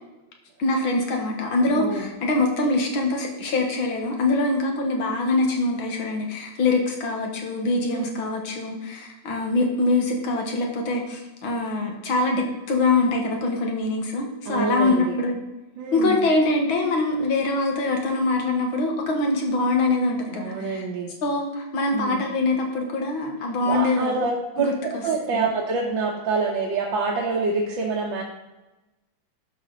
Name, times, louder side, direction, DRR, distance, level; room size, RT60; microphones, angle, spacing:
voice 1, 0.6-15.4 15.9-20.8 21.2-24.1 24.6-25.0 25.3-25.5, left 2 dB, 80° left, 2 dB, 2.2 m, -24 dB
voice 2, 1.6-2.0 7.9-8.1 14.5-15.2 15.8-16.2 20.3-21.1 21.9-22.2 23.7-28.2, right 4 dB, 75° right, -2 dB, 1.7 m, -26 dB
11.5 x 6.0 x 3.9 m, 1.1 s
omnidirectional pair, 2.2 m